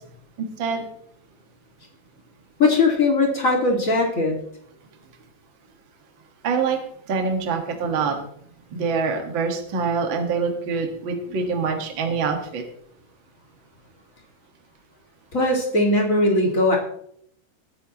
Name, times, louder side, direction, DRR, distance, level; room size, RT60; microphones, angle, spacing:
voice 1, 0.4-0.8 6.4-6.8 7.1-8.2 8.7-12.6, right 5 dB, 60° right, 3 dB, 1.3 m, -25 dB
voice 2, 2.6-4.4 15.3-16.8, left 2 dB, 30° left, 0 dB, 1.5 m, -19 dB
19.5 x 9.0 x 3.0 m, 0.68 s
omnidirectional pair, 4.9 m